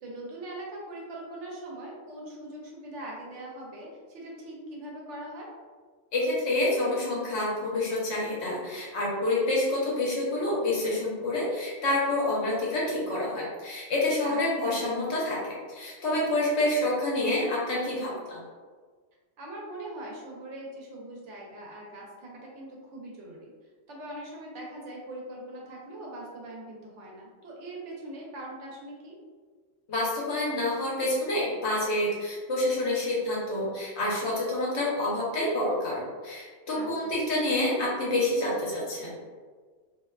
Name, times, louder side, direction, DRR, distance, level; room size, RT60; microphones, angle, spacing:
voice 1, 0.0-5.5 14.2-14.4 19.4-23.5 23.9-29.2 36.7-37.1, right 1 dB, 75° right, -3 dB, 0.9 m, -41 dB
voice 2, 6.1-18.4 29.9-39.2, left 1 dB, 65° left, -5 dB, 0.9 m, -28 dB
2.5 x 2.2 x 2.2 m, 1.5 s
omnidirectional pair, 1.3 m